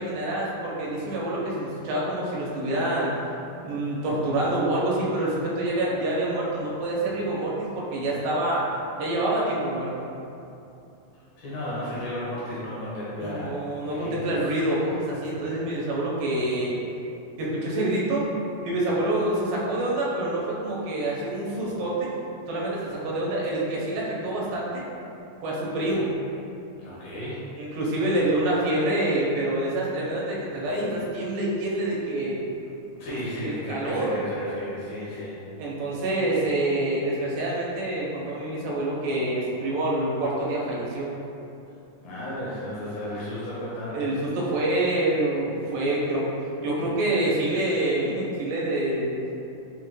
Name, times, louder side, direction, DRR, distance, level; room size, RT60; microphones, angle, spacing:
voice 1, 0.0-3.1 3.7-8.6 9.0-9.9 13.2-16.8 17.4-18.3 18.6-22.1 22.5-24.8 25.4-26.1 27.6-32.4 33.1-34.2 35.6-41.1 43.9-46.3 46.6-49.2, right 1 dB, 85° right, -5 dB, 2.4 m, -26 dB
voice 2, 11.4-13.6 13.9-14.4 26.8-27.5 32.9-35.4 42.0-44.1, left 1 dB, 75° left, -8 dB, 1.8 m, -33 dB
5.6 x 2.2 x 3.0 m, 2.7 s
omnidirectional pair, 3.9 m